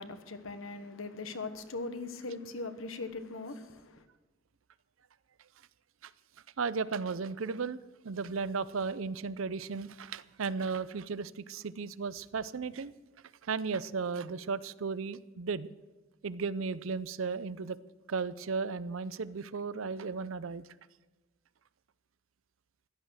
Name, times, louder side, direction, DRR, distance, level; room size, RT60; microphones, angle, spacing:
voice 1, 0.0-4.0, left 3 dB, 70° left, 1.2 m, -40 dB
voice 2, 6.6-12.9 13.4-15.7 16.2-17.8 18.1-20.7, right 5 dB, 70° right, 0.6 m, -35 dB
15.5 x 11.0 x 6.4 m
head